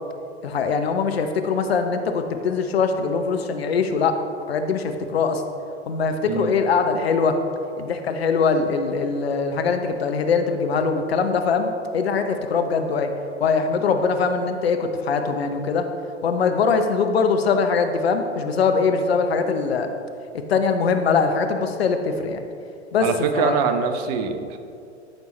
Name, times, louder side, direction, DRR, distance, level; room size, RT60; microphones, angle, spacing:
voice 1, 0.4-4.2 4.5-5.4 5.9-7.4 7.8-13.1 13.4-15.8 16.2-19.9 20.5-22.4 22.9-23.1 23.3-23.6, left 5 dB, 65° left, 7 dB, 0.8 m, -22 dB
voice 2, 6.2-6.6 23.0-24.6, right 6 dB, 35° right, 8 dB, 0.6 m, -24 dB
13.0 x 5.3 x 3.0 m, 2.4 s
figure-of-eight pair, 95°, 33 cm